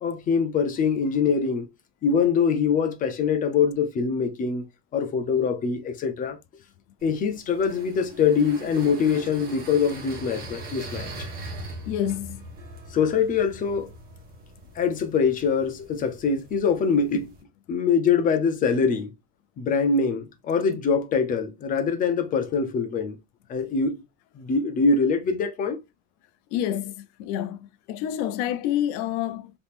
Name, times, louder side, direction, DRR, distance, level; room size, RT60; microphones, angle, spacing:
voice 1, 0.0-1.7 2.0-4.7 4.9-6.4 7.0-11.1 12.9-13.9 14.8-17.3 17.7-19.1 19.6-23.2 23.5-24.0 24.3-25.8, left 5 dB, 25° left, 0.5 m, -23 dB
sound 1, 7.0-17.4, right 1 dB, 25° right, 1.0 m, -41 dB
voice 2, 11.9-12.5 26.5-29.5, left 11 dB, 80° left, 0.5 m, -28 dB
3.5 x 3.0 x 2.4 m
cardioid pair, 175°, 34 cm